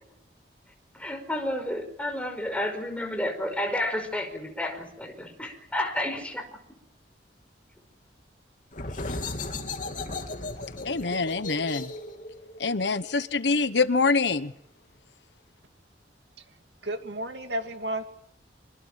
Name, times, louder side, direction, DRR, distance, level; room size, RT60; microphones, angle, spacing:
voice 1, 0.9-6.5, left 1 dB, 5° left, 5.2 m, -31 dB
sound 1, 8.7-14.1, left 2 dB, 45° left, 3.1 m, -36 dB
voice 2, 10.8-11.9 12.6-14.5, left 4 dB, 70° left, 1.1 m, -25 dB
voice 3, 16.8-18.0, right 1 dB, 70° right, 2.8 m, -32 dB
26.0 x 25.0 x 7.6 m
head